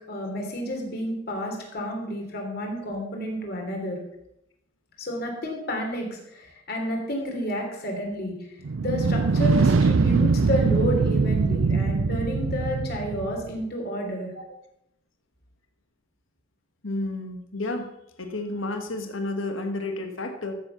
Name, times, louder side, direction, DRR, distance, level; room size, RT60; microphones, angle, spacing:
voice 1, 0.1-4.0 5.0-8.4 8.8-14.3, equal, 50° left, 1 dB, 3.3 m, -30 dB
sound 1, 8.6-13.5, right 4 dB, 70° right, 0.5 m, -22 dB
voice 2, 16.8-17.9 18.2-20.5, left 2 dB, 70° left, 5 dB, 1.4 m, -31 dB
14.0 x 7.5 x 5.8 m, 0.80 s
head